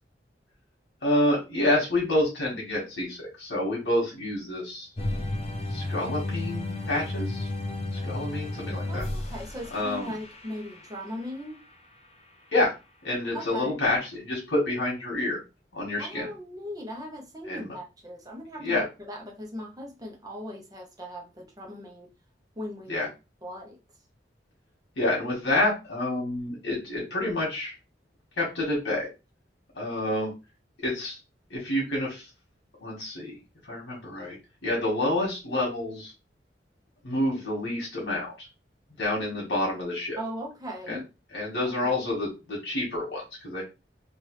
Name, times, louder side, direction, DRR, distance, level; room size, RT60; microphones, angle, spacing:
voice 1, 1.0-4.9 5.7-7.5 7.9-9.1 9.7-10.1 12.5-12.7 13.0-15.4 15.7-16.3 17.5-17.7 18.6-18.9 22.9-23.1 25.0-27.8 28.4-29.1 29.8-30.3 30.8-31.2 31.5-32.3 32.8-33.4 33.7-34.4 34.6-36.1 37.0-38.5 39.0-40.2 40.9-41.0 41.3-43.6, left 1 dB, 85° left, 1.3 m, -28 dB
sound 1, 5.0-11.3, left 2 dB, 35° left, 0.6 m, -33 dB
voice 2, 8.9-11.6 13.3-13.8 16.0-22.1 22.6-23.0 23.4-23.8 40.2-41.0 41.8-42.1, equal, 20° right, 0.8 m, -38 dB
3.2 x 2.5 x 3.1 m
head